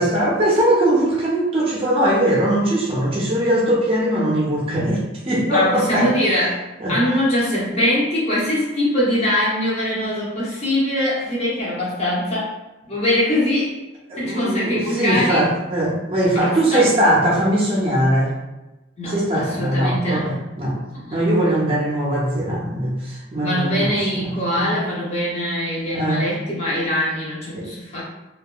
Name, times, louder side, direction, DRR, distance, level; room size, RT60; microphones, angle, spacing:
voice 1, 0.0-6.1 6.8-7.0 14.1-18.3 19.1-20.8 21.1-24.3 24.5-24.7 25.9-26.2 27.5-27.7, right 1 dB, 30° right, -5 dB, 0.5 m, -20 dB
voice 2, 5.5-12.5 12.9-13.8 14.2-15.4 16.3-16.9 19.0-20.3 20.9-21.2 23.4-28.0, left 1 dB, 35° left, -6 dB, 0.7 m, -22 dB
2.7 x 2.2 x 2.2 m, 1.0 s
head